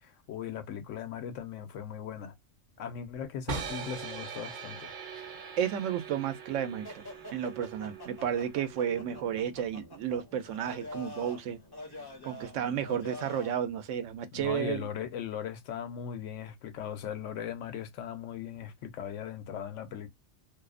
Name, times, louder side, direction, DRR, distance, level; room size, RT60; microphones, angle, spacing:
voice 1, 0.0-2.3 2.8-4.9 14.3-20.1, left 8 dB, 80° left, 1.0 m, -38 dB
sound 1, 3.5-9.5, right 5 dB, 55° right, 0.6 m, -42 dB
voice 2, 5.6-7.0 7.3-11.6 12.2-14.9, right 9 dB, 85° right, 0.9 m, -32 dB
sound 2, 6.8-13.6, left 1 dB, 30° left, 0.4 m, -46 dB
2.6 x 2.0 x 2.3 m
omnidirectional pair, 1.3 m